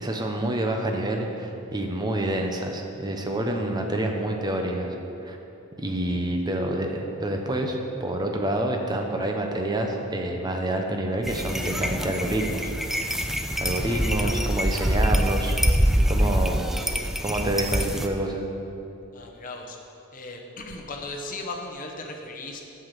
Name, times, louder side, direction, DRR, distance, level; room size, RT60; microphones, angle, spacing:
voice 1, 0.0-4.9 5.2-5.4 5.8-13.2 13.6-15.6 16.1-16.7 17.2-18.5, right 1 dB, 20° right, 2 dB, 0.8 m, -28 dB
sound 1, 11.2-18.1, equal, ahead, 0.3 m, -25 dB
voice 2, 13.9-14.5 16.3-16.4 19.1-19.8 20.1-22.6, left 2 dB, 40° left, 2 dB, 1.0 m, -37 dB
8.3 x 5.7 x 7.5 m, 2.9 s
head